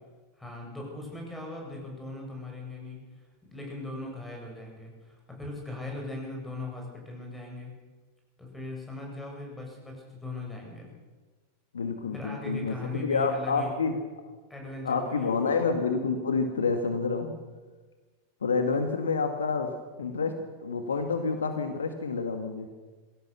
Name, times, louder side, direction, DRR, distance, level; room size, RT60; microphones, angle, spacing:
voice 1, 0.4-7.7 8.4-10.9 12.1-13.7 14.5-15.6, left 2 dB, 5° left, 0 dB, 7.8 m, -39 dB
voice 2, 11.7-13.9 14.8-17.3 18.4-22.7, left 4 dB, 70° left, 7 dB, 1.9 m, -28 dB
23.0 x 16.5 x 7.1 m, 1.3 s
figure-of-eight pair, 90°, 0 cm